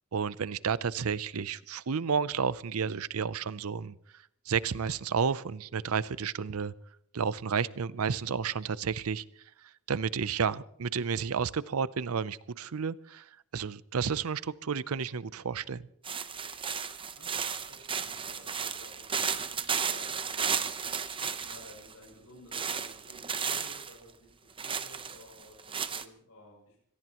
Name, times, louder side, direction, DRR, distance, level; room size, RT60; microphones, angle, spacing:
voice 1, 0.1-4.0 4.5-6.7 7.1-9.2 9.9-13.2 13.5-15.8, right 6 dB, 75° right, 0.6 m, -31 dB
sound 1, 16.0-21.9 22.5-23.9 24.6-26.1, right 6 dB, 25° right, 0.8 m, -34 dB
voice 2, 17.1-26.8, left 1 dB, 70° left, 7.1 m, -54 dB
25.0 x 18.5 x 3.0 m
head